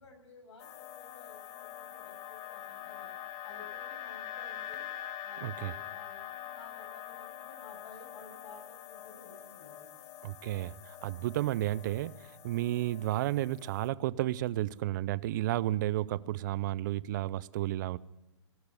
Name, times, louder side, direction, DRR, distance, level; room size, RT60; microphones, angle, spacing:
voice 1, 0.0-3.1 3.4-4.8 5.2-9.9 10.3-10.6, left 3 dB, 75° left, 1 dB, 7.0 m, -54 dB
sound 1, 0.6-13.9, left 11 dB, 25° left, 0.8 m, -45 dB
voice 2, 5.4-5.7 10.2-18.0, right 14 dB, 40° right, 19 dB, 0.5 m, -32 dB
18.0 x 6.8 x 9.8 m, 1.0 s
hypercardioid pair, 140°, 15 cm